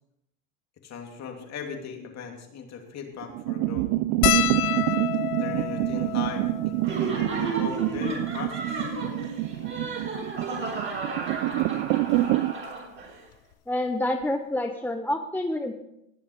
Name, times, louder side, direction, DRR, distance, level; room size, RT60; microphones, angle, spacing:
voice 1, 0.8-3.9 5.4-8.9, left 6 dB, 35° left, 3 dB, 2.9 m, -38 dB
sound 1, 3.2-12.5, right 16 dB, 45° right, 0.5 m, -27 dB
sound 2, 4.2-8.8 9.6-9.7 9.9-10.1 11.3-11.5 13.0-13.1 13.3-13.5, left 16 dB, 70° left, 0.8 m, -30 dB
Laughter, 6.8-13.2, right 3 dB, 25° right, 4.6 m, -33 dB
voice 2, 13.7-15.7, left 1 dB, 5° left, 5 dB, 0.7 m, -28 dB
19.5 x 7.2 x 5.1 m, 0.82 s
supercardioid pair, 115°, 43 cm